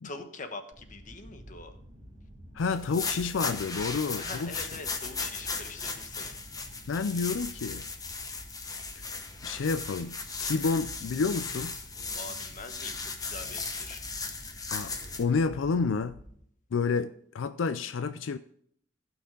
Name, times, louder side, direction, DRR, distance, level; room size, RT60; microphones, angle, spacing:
voice 1, 0.0-1.7 4.2-6.3 12.2-14.0, left 3 dB, 45° left, 1.2 m, -43 dB
sound 1, 0.7-16.3, equal, 30° right, 2.6 m, -49 dB
voice 2, 2.5-4.7 6.9-7.8 9.0-9.1 9.4-11.7 14.7-16.2 16.7-18.4, left 4 dB, 90° left, 0.4 m, -30 dB
sound 2, 2.7-15.2, left 4 dB, 20° left, 1.0 m, -37 dB
15.0 x 6.0 x 3.8 m
head